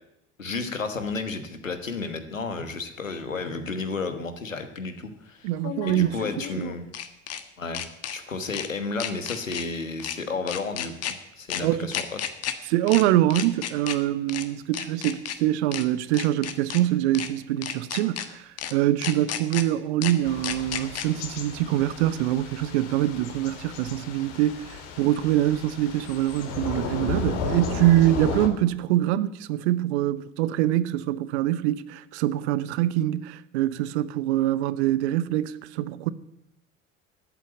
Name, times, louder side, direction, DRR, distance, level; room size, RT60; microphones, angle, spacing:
voice 1, 0.4-5.5 5.9-6.9 7.6-7.8 8.1-12.2 27.2-27.5, left 4 dB, 85° left, 1.4 m, -32 dB
sound 1, 3.1-3.2 5.6-7.4 7.7-8.2 8.5-8.7 9.0-9.6 10.0-10.2 10.5-11.1 11.5-11.6 11.9-12.5 12.9-13.0 13.3-14.0 14.3-14.4 14.7-15.4 15.7-15.8 16.1-16.8 17.1-17.3 17.6-18.3 18.6-18.7 19.0-19.6 20.0-20.1 20.4-21.1, left 10 dB, 40° left, 1.4 m, -32 dB
voice 2, 5.4-6.2 6.6-6.7 11.6-11.9 12.7-36.1, right 13 dB, 60° right, 0.8 m, -24 dB
Thunder / Rain, 20.2-28.5, left 5 dB, 60° left, 2.2 m, -34 dB
13.0 x 8.4 x 9.2 m
figure-of-eight pair, 65°, 38 cm